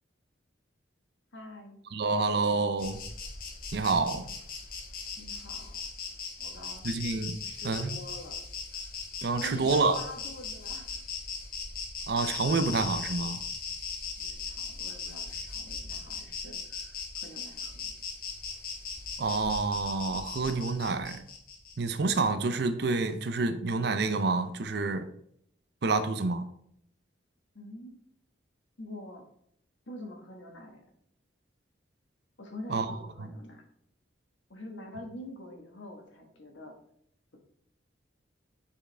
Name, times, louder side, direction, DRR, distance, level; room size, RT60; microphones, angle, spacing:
voice 1, 1.3-1.8 5.2-5.8 6.4-6.9 7.4-8.4 9.4-11.0 14.2-17.9 27.5-28.0 28.8-29.3 29.9-30.9 32.4-33.6 34.5-36.7, left 1 dB, 70° left, 3 dB, 1.3 m, -45 dB
voice 2, 1.9-3.0 3.7-4.3 6.8-7.4 7.6-8.0 9.2-10.0 12.1-13.4 19.2-21.2 21.8-25.1 25.8-26.5 32.7-32.9, right 3 dB, 55° right, 10 dB, 0.5 m, -28 dB
Insect, 2.8-22.0, left 5 dB, 45° left, 1.0 m, -39 dB
6.9 x 4.9 x 3.3 m, 0.68 s
head